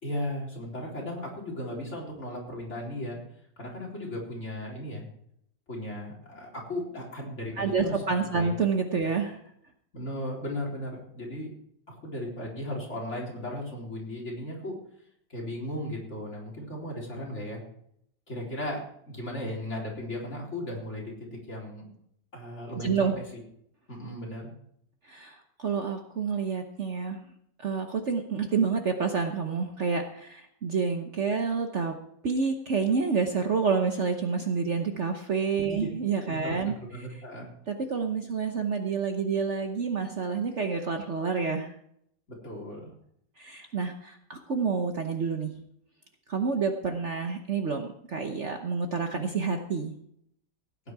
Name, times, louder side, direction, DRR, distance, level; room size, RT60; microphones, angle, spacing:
voice 1, 0.0-3.2 3.6-5.0 5.7-8.6 9.0-9.1 9.9-11.5 11.9-14.7 15.3-17.6 18.3-18.8 19.1-21.1 21.5-21.9 22.3-23.4 23.9-24.5 35.6-35.9 36.3-37.5 42.3-42.9, left 1 dB, 40° left, -3 dB, 4.2 m, -36 dB
voice 2, 7.6-9.4 22.8-23.1 25.1-27.2 27.6-31.9 32.2-36.7 37.7-41.7 43.4-45.5 46.3-49.9, right 5 dB, 50° right, 5 dB, 1.1 m, -28 dB
16.5 x 9.7 x 4.7 m, 0.71 s
omnidirectional pair, 1.9 m